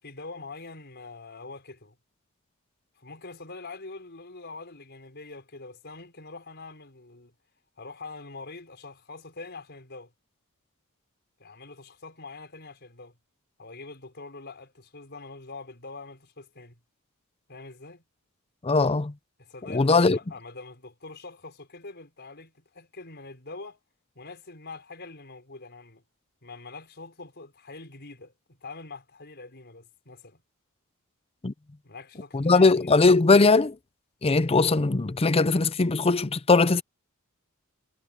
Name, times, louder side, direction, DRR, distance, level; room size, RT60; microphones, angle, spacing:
voice 1, 0.0-2.0 3.0-7.3 7.8-10.1 11.4-13.2 13.6-16.8 17.5-18.0 19.4-23.8 24.2-26.0 26.4-30.4 31.8-32.9, left 3 dB, 50° left, 5.3 m, -44 dB
voice 2, 18.6-19.1 19.7-20.2 31.4-31.5 32.3-33.8 34.2-36.8, left 3 dB, 25° left, 0.6 m, -20 dB
head